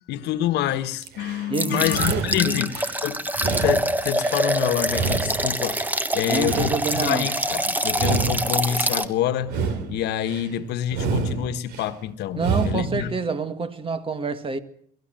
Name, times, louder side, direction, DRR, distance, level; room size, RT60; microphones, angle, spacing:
voice 1, 0.1-5.9 6.1-9.6 9.9-13.1, left 11 dB, 80° left, 1.5 m, -27 dB
sound 1, 1.0-1.5 1.9-3.0 3.4-4.5 4.9-6.0 6.4-7.5 7.9-9.0 9.4-10.5 10.9-11.9 12.3-13.0, right 4 dB, 90° right, 3.1 m, -29 dB
sound 2, 1.5-9.1, right 1 dB, 10° right, 1.3 m, -25 dB
voice 2, 1.5-2.7 6.3-7.3 12.4-14.6, right 4 dB, 30° right, 1.9 m, -27 dB
23.0 x 14.5 x 9.1 m
cardioid pair, 110°, 17 cm